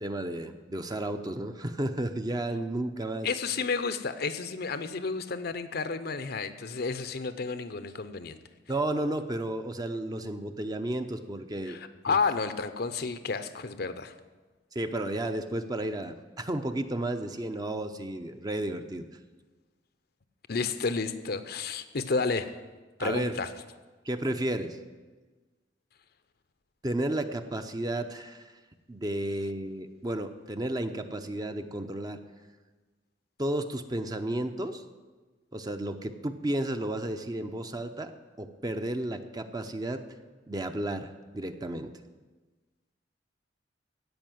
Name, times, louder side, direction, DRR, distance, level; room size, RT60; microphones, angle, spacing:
voice 1, 0.0-3.3 8.7-11.8 12.1-12.2 14.7-19.1 23.0-23.4 24.1-24.8 26.8-28.5 28.9-32.2 33.4-34.8 35.5-38.1 38.4-40.0 40.5-41.9, right 1 dB, 20° right, 7 dB, 0.7 m, -32 dB
voice 2, 3.2-8.4 11.7-14.1 20.5-22.5 23.0-23.5, left 4 dB, 60° left, 11 dB, 0.7 m, -31 dB
16.0 x 5.5 x 9.2 m, 1.3 s
head